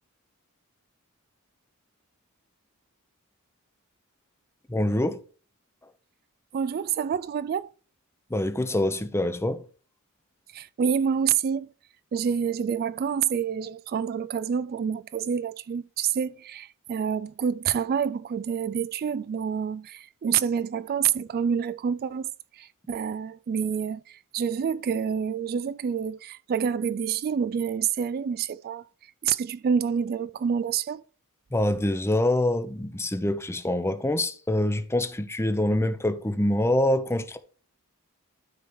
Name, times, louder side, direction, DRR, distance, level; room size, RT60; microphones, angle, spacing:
voice 1, 4.7-5.2 8.3-9.6 31.5-37.4, left 1 dB, 10° left, 0.7 m, -25 dB
voice 2, 6.5-7.7 10.5-11.7 12.1-22.3 22.5-28.8 29.2-31.0, right 7 dB, 45° right, 0.3 m, -27 dB
12.5 x 4.6 x 4.6 m
head